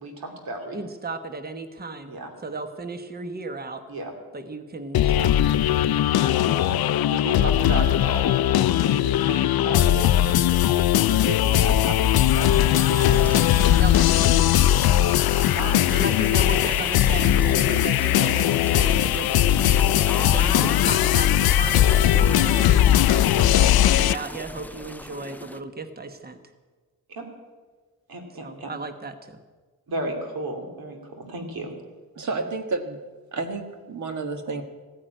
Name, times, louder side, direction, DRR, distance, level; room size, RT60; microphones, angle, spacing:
voice 1, 0.0-0.8 2.1-2.3 3.9-4.1 6.5-12.5 12.9-13.3 13.6-13.8 15.5-15.8 20.1-20.8 27.1-27.3 28.1-28.7 29.9-31.7, right 2 dB, 75° right, 3 dB, 2.9 m, -34 dB
voice 2, 0.7-2.1 2.4-3.8 4.3-6.0 12.7-13.2 13.8-14.4 15.9-19.5 20.3-26.4 28.4-29.4 32.2-32.3, right 3 dB, 25° right, 8 dB, 1.0 m, -35 dB
sound 1, 4.9-24.2, left 12 dB, 80° left, 0.5 m, -19 dB
sound 2, 13.1-25.6, left 1 dB, 5° left, 0.4 m, -38 dB
voice 3, 32.1-33.0 33.3-34.6, right 3 dB, 55° right, 6 dB, 1.6 m, -30 dB
15.5 x 9.8 x 8.9 m, 1.4 s
wide cardioid pair, 165°, 36 cm